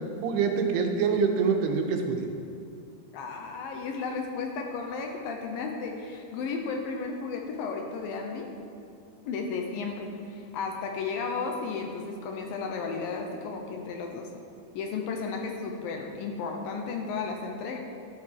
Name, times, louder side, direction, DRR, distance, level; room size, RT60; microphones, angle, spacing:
voice 1, 0.2-2.3, right 5 dB, 90° right, 4 dB, 2.8 m, -25 dB
voice 2, 3.1-8.5 9.3-14.3 14.8-17.8, left 4 dB, 75° left, 2 dB, 2.3 m, -34 dB
12.5 x 8.5 x 4.3 m, 2.5 s
omnidirectional pair, 4.6 m